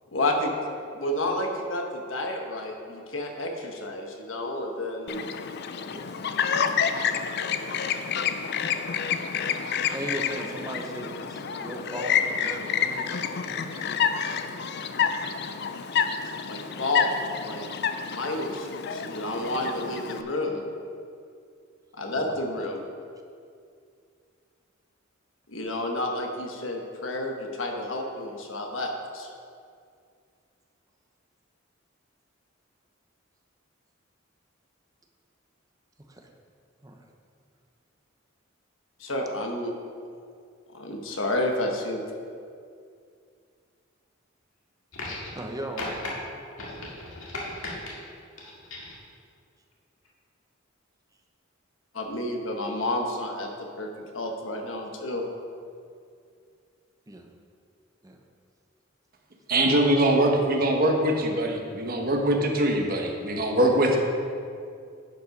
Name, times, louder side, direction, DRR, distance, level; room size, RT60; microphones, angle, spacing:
voice 1, 0.1-0.5 0.9-5.3 16.4-17.1 17.4-17.7 18.1-20.6 22.0-22.8 25.5-29.3 39.0-39.7 40.7-42.0 51.9-55.2, left 1 dB, 70° left, 2 dB, 1.2 m, -30 dB
Chirp tweet, 5.1-20.2, left 7 dB, 55° left, 0.5 m, -29 dB
voice 2, 9.9-13.6 22.1-22.4 36.1-36.3 36.8-36.9 45.3-45.9 57.1-57.2 58.0-58.2, right 1 dB, 15° right, 2 dB, 0.8 m, -37 dB
sound 1, 44.9-45.5 45.8-46.1 46.6-47.9 48.4-49.0 50.1-50.2, left 2 dB, 90° left, 2.0 m, -36 dB
voice 3, 59.5-64.0, right 1 dB, 45° right, 2 dB, 1.1 m, -22 dB
11.0 x 5.4 x 5.3 m, 2.3 s
head